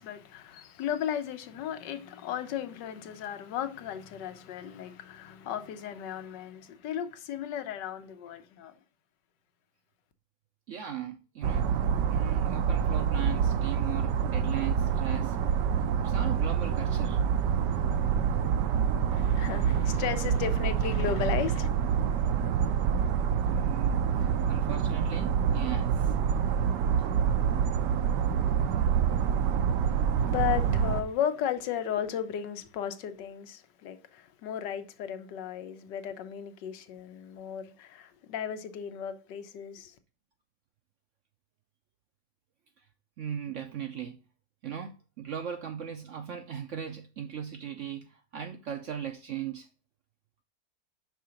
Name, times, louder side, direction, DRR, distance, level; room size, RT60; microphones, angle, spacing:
voice 1, 0.0-8.7 19.1-21.7 30.2-39.9, left 9 dB, 85° left, 1.4 m, -35 dB
voice 2, 10.7-11.7 12.1-15.4 16.0-17.2 23.5-26.1 43.2-44.2 44.6-49.7, right 9 dB, 65° right, 0.7 m, -38 dB
sound 1, 11.4-31.0, right 7 dB, 85° right, 1.3 m, -27 dB
5.8 x 3.7 x 5.7 m
omnidirectional pair, 1.8 m